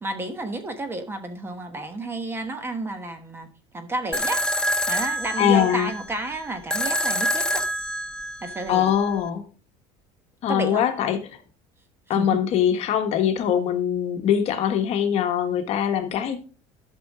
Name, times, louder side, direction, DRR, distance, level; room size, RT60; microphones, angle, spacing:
voice 1, 0.0-3.5 3.7-4.4 4.9-7.6 8.4-8.9 10.5-10.8 12.1-12.4, right 2 dB, 15° right, 1.1 m, -31 dB
sound 1, 4.1-9.1, equal, 5° left, 0.6 m, -27 dB
voice 2, 5.4-5.9 8.7-9.4 10.4-11.2 12.1-16.4, left 9 dB, 50° left, 1.4 m, -22 dB
12.5 x 5.9 x 3.7 m
cardioid pair, 135°, 13 cm